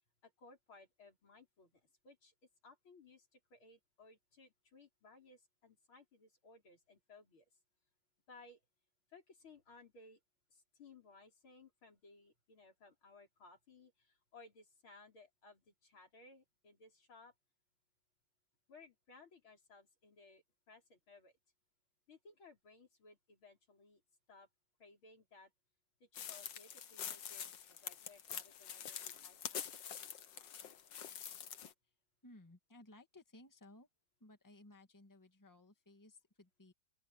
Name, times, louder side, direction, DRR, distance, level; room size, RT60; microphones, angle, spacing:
voice 1, 0.2-2.3 2.6-7.4 8.3-8.6 9.1-10.2 10.5-17.3 18.7-21.3 22.1-24.0 24.3-24.5 24.8-25.5 26.0-29.7, left 3 dB, 80° left, 6.1 m, -61 dB
sound 1, 26.1-31.7, left 9 dB, 65° left, 1.8 m, -46 dB
voice 2, 32.2-33.9 34.2-36.7, left 2 dB, 10° left, 1.9 m, -60 dB
open air
omnidirectional pair, 2.2 m